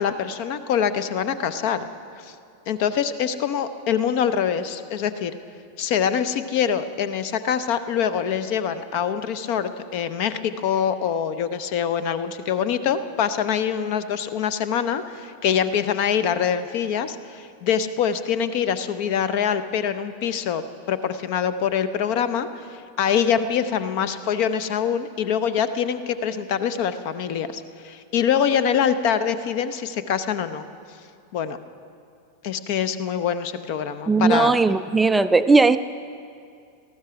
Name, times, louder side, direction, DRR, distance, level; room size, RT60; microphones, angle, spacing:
voice 1, 0.0-1.9 2.2-2.3 2.7-5.3 5.8-30.7 31.3-31.6 32.4-34.5, left 8 dB, 45° left, 13 dB, 0.7 m, -24 dB
voice 2, 34.1-35.8, right 3 dB, 10° right, 12 dB, 0.3 m, -17 dB
18.5 x 14.0 x 5.0 m, 2.4 s
figure-of-eight pair, 90°, 0 cm